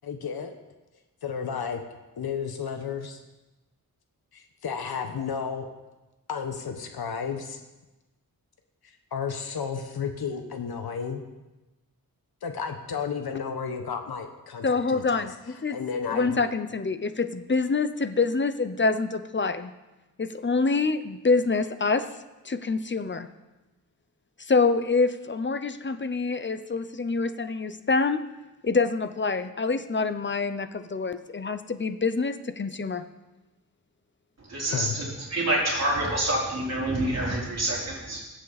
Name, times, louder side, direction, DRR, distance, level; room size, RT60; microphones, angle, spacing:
voice 1, 0.0-0.5 1.2-1.8 2.2-3.2 4.3-5.7 6.3-7.6 9.1-11.2 12.4-15.3 15.7-16.4 34.6-35.0, left 6 dB, 85° left, 5 dB, 1.2 m, -32 dB
voice 2, 14.6-15.8 16.1-19.7 20.2-22.1 22.4-23.3 24.4-28.2 28.6-33.0, left 4 dB, 30° left, 10 dB, 0.8 m, -26 dB
voice 3, 34.5-38.2, right 1 dB, 45° right, -5 dB, 4.3 m, -27 dB
22.0 x 8.2 x 4.1 m, 1.1 s
wide cardioid pair, 105°, 36 cm